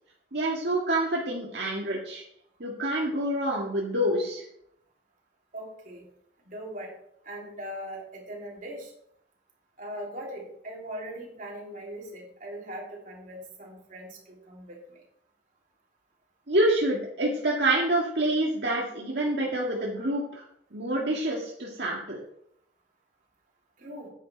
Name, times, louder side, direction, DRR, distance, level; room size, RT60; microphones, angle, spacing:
voice 1, 0.3-2.2 2.6-4.4 16.5-20.2 20.7-22.2, right 1 dB, 65° right, -3 dB, 1.8 m, -27 dB
voice 2, 5.5-6.1 6.4-6.9 7.2-8.9 9.8-15.0 23.8-24.1, equal, 45° right, -2 dB, 3.1 m, -40 dB
10.0 x 8.5 x 4.5 m, 0.73 s
head